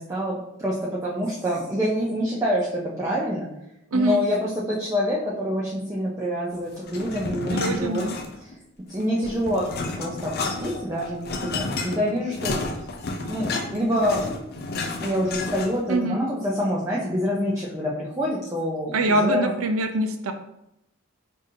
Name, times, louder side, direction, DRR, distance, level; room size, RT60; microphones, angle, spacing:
voice 1, 0.0-3.5 3.9-8.1 8.4-8.5 8.9-9.7 10.0-12.6 13.3-14.3 14.9-19.5, equal, 15° right, -6 dB, 0.5 m, -26 dB
sound 1, 6.9-8.6 8.9-15.9, left 3 dB, 50° left, 0.5 m, -31 dB
voice 2, 7.5-8.2 15.9-16.2 18.9-20.3, right 2 dB, 85° right, 6 dB, 0.5 m, -24 dB
5.0 x 2.6 x 2.7 m, 0.84 s
head